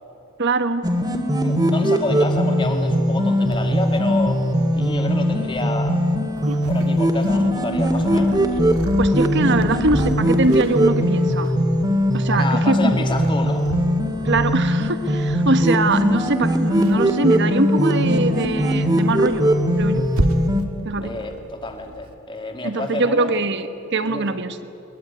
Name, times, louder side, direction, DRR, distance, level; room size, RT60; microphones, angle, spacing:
voice 1, 0.4-0.9 9.0-11.5 12.1-13.1 14.2-19.5 19.8-20.1 20.8-21.1 22.6-24.6, right 2 dB, 50° right, 10 dB, 1.3 m, -22 dB
sound 1, 0.8-20.6, equal, 20° right, 2.1 m, -20 dB
voice 2, 1.4-4.4 4.7-6.0 6.7-8.4 12.3-13.7 20.9-23.4 24.1-24.4, left 2 dB, 20° left, 4 dB, 2.3 m, -29 dB
Purr, 3.4-22.1, right 1 dB, 80° right, 1.7 m, -34 dB
22.5 x 21.0 x 9.7 m, 2.8 s
head